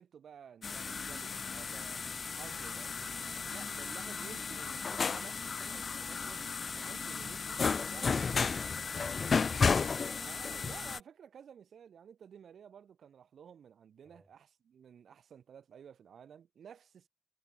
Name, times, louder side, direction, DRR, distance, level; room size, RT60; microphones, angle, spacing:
voice 1, 0.0-2.0 2.3-7.6 7.9-8.5 10.2-17.1, right 8 dB, 65° right, 1.5 m, -53 dB
sound 1, 0.6-11.0, left 5 dB, 40° left, 0.4 m, -34 dB
voice 2, 8.6-9.9 14.0-14.3, right 1 dB, 5° right, 6.0 m, -63 dB
cardioid pair, 110°, 0 cm